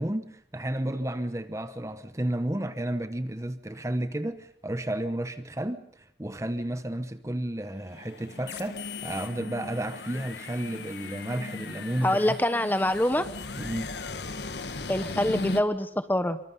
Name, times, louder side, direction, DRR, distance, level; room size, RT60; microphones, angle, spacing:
voice 1, 0.0-12.3 13.6-14.0, right 1 dB, 15° right, 0.9 m, -32 dB
sound 1, 7.9-15.6, left 3 dB, 75° left, 1.4 m, -38 dB
voice 2, 12.0-13.3 14.9-16.4, left 1 dB, 10° left, 1.0 m, -25 dB
25.0 x 24.5 x 5.5 m
head